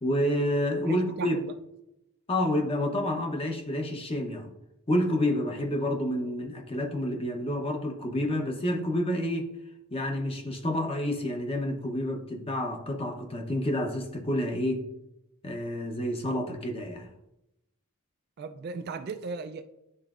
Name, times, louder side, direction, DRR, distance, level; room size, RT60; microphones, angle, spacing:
voice 1, 0.0-1.4 2.3-4.5 4.9-9.5 9.9-14.9 15.4-17.1, left 1 dB, 25° left, 2 dB, 0.8 m, -29 dB
voice 2, 0.8-1.5 18.4-19.6, right 4 dB, 45° right, 9 dB, 0.3 m, -36 dB
11.0 x 3.8 x 2.4 m, 0.89 s
head